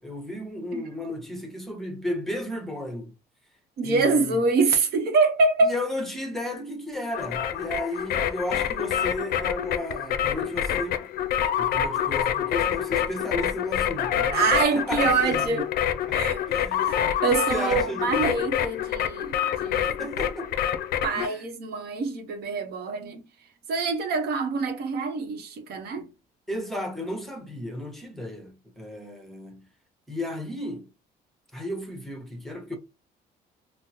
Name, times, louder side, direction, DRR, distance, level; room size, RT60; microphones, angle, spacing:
voice 1, 0.0-3.1 3.8-4.4 5.6-11.1 11.6-14.4 14.7-15.6 16.1-18.3 19.8-20.5 21.1-21.4 26.5-29.7 30.1-30.9 31.5-32.8, left 1 dB, ahead, 0.9 m, -34 dB
voice 2, 3.8-5.7 14.3-15.7 16.1-16.4 16.8-20.0 21.0-23.2 23.7-26.1, right 4 dB, 70° right, 0.8 m, -25 dB
sound 1, 7.1-21.3, left 10 dB, 65° left, 0.4 m, -27 dB
3.6 x 2.0 x 2.8 m
cardioid pair, 110°, 17 cm